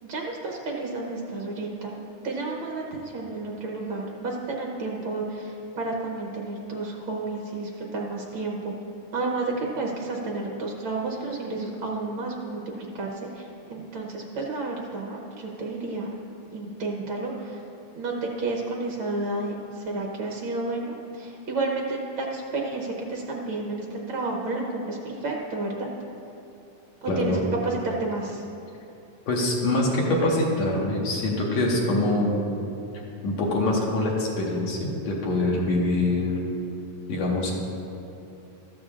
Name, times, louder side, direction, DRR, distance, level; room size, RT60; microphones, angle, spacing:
voice 1, 0.0-2.0 2.2-8.7 9.1-16.1 16.5-17.6 17.9-25.9 27.0-27.4 27.6-28.4, right 3 dB, 75° right, -1 dB, 1.1 m, -31 dB
voice 2, 27.1-27.4 29.3-32.3 33.2-36.4 37.1-37.5, left 2 dB, 60° left, -2 dB, 2.5 m, -24 dB
14.0 x 13.5 x 2.5 m, 2.8 s
omnidirectional pair, 3.7 m